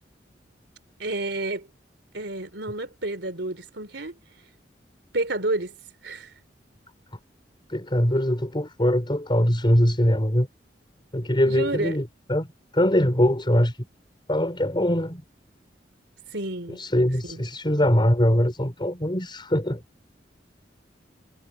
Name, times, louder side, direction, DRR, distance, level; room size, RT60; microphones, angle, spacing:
voice 1, 1.0-1.7 2.1-4.1 5.1-5.7 6.0-6.3 11.5-12.0 16.3-16.8 17.2-17.4, right 2 dB, 70° right, 4.2 m, -30 dB
voice 2, 7.7-10.5 11.1-13.8 14.3-15.2 16.7-19.8, equal, 25° left, 5.0 m, -22 dB
head